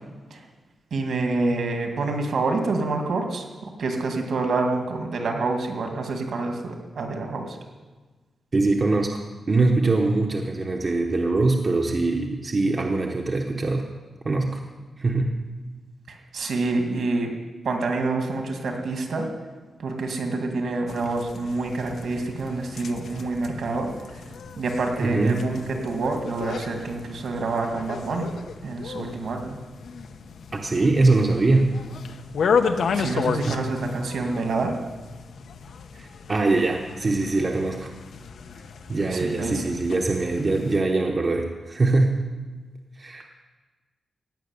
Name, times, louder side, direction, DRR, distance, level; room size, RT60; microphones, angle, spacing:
voice 1, 0.9-7.6 16.1-17.3 17.6-19.3 19.8-24.2 24.6-28.3 28.6-29.6 32.9-34.8 39.1-39.7, right 3 dB, 65° right, 3 dB, 2.1 m, -27 dB
voice 2, 8.5-9.2 9.5-13.8 14.2-14.6 15.0-15.3 25.0-25.3 30.5-31.7 33.4-33.6 35.9-37.9 38.9-42.2 43.0-43.2, right 3 dB, 30° right, 1 dB, 0.9 m, -22 dB
sound 1, 20.9-40.8, left 6 dB, 70° left, 0.8 m, -33 dB
16.0 x 6.3 x 9.5 m, 1.3 s
wide cardioid pair, 180°, 0 cm